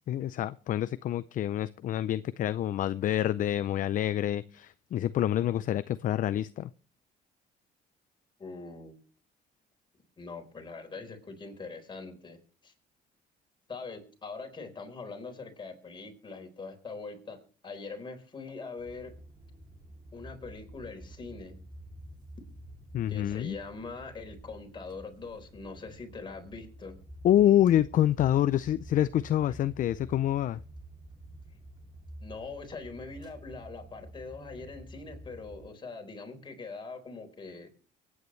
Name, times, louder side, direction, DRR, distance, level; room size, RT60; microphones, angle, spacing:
voice 1, 0.1-6.7 22.9-23.6 27.2-30.6, left 12 dB, 50° left, 15 dB, 0.5 m, -27 dB
voice 2, 8.4-9.0 10.2-12.4 12.6-12.7 13.7-17.4 17.6-19.1 20.1-21.6 23.1-26.9 32.2-37.7, left 4 dB, 30° left, 4 dB, 4.2 m, -42 dB
sound 1, 18.8-35.7, right 1 dB, 25° right, 3.1 m, -49 dB
23.5 x 9.5 x 3.2 m, 0.39 s
cardioid pair, 110°, 17 cm